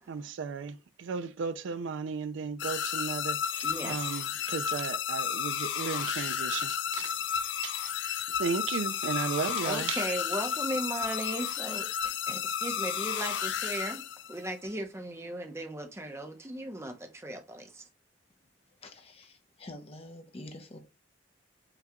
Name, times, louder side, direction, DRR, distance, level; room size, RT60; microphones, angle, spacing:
voice 1, 0.1-7.8 8.4-10.0, right 5 dB, 75° right, 0.4 m, -35 dB
sound 1, 2.6-14.5, left 8 dB, 70° left, 0.4 m, -32 dB
voice 2, 3.6-4.2 9.6-14.0 14.3-17.8, right 1 dB, 15° right, 0.7 m, -37 dB
voice 3, 18.7-20.9, left 1 dB, 30° left, 0.6 m, -47 dB
5.8 x 2.3 x 2.9 m
head